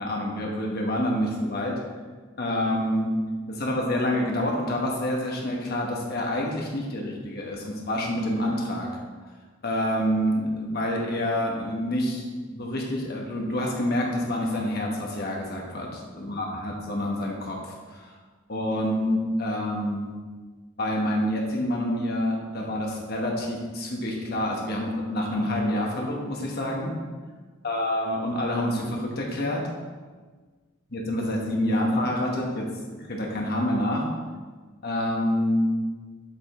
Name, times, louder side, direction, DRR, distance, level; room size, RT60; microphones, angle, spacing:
voice 1, 0.0-1.7 2.4-3.1 3.5-8.9 9.6-18.1 18.5-20.1 20.8-26.9 27.6-29.7 30.9-34.0 34.8-35.7, left 1 dB, 50° left, -1 dB, 1.3 m, -27 dB
7.4 x 5.1 x 3.7 m, 1.4 s
head